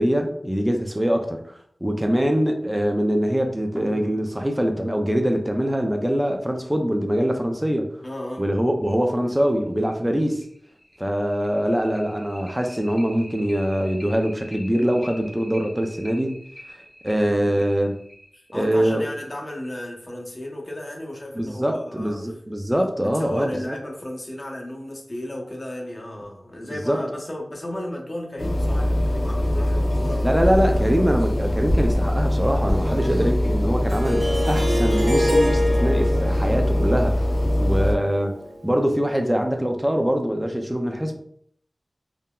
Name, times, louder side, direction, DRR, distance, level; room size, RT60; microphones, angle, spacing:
voice 1, 0.0-1.4 1.8-7.9 8.4-10.4 11.0-16.4 17.0-18.0 18.5-19.0 21.3-23.8 26.7-27.0 30.2-37.2 37.6-38.3 38.6-41.2, equal, 15° right, 3 dB, 0.4 m, -23 dB
voice 2, 2.0-2.3 8.0-8.5 18.3-22.3 22.7-30.4 30.8-30.9 32.8-33.4, left 1 dB, 45° left, 0 dB, 0.8 m, -34 dB
sound 1, 3.7-6.9 8.4-8.5 8.9-9.0 9.4-9.5 9.9-19.9, equal, 15° left, 0.8 m, -45 dB
sound 2, 28.4-37.9, left 1 dB, 85° left, 0.5 m, -22 dB
Harp, 33.9-38.8, left 1 dB, 85° right, 0.7 m, -26 dB
3.7 x 2.0 x 2.2 m, 0.65 s
cardioid pair, 40°, 0 cm